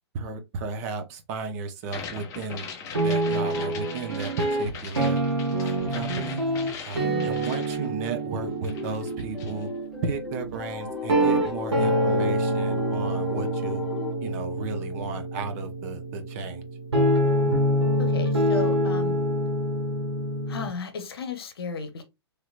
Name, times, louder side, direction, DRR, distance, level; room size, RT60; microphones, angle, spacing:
voice 1, 0.1-5.2 5.6-6.4 6.8-9.7 10.0-13.8 14.2-16.6, right 4 dB, 35° right, 0.7 m, -34 dB
sound 1, 1.8-8.4 8.6-9.6, left 6 dB, 20° left, 0.5 m, -40 dB
sound 2, 2.9-20.7, right 1 dB, 75° right, 1.3 m, -26 dB
voice 2, 7.0-7.3 18.0-19.2 20.5-22.0, left 4 dB, 60° left, 0.8 m, -34 dB
sound 3, 8.3-14.1, left 4 dB, ahead, 0.9 m, -36 dB
3.2 x 2.9 x 2.4 m
figure-of-eight pair, 110°, 14 cm